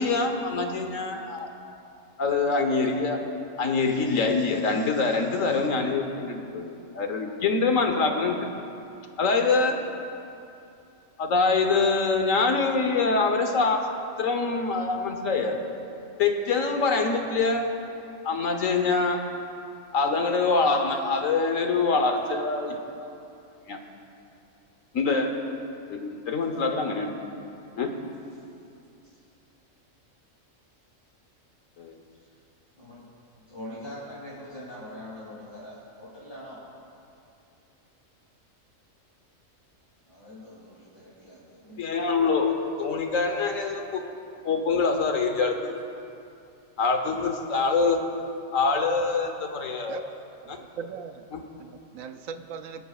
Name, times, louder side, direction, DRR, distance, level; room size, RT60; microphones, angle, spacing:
voice 1, 0.0-1.5 2.2-3.2 3.6-8.5 9.2-9.7 11.2-13.8 14.2-15.6 16.2-17.7 18.2-19.2 19.9-22.8 23.7-23.8 24.9-25.3 25.9-27.1 27.8-27.9 31.8-31.9 41.7-44.0 44.4-45.8 46.8-48.0 48.5-50.0 50.5-50.6 51.3-51.4, left 4 dB, 75° left, 4 dB, 1.5 m, -25 dB
voice 2, 27.9-28.2 29.0-29.2 32.2-32.3 32.8-33.1 33.5-36.6 40.1-41.8, left 1 dB, 40° left, -10 dB, 3.3 m, -43 dB
voice 3, 50.5-51.3 51.6-52.8, right 6 dB, 85° right, 8 dB, 1.0 m, -39 dB
22.0 x 13.0 x 2.4 m, 2.6 s
omnidirectional pair, 1.4 m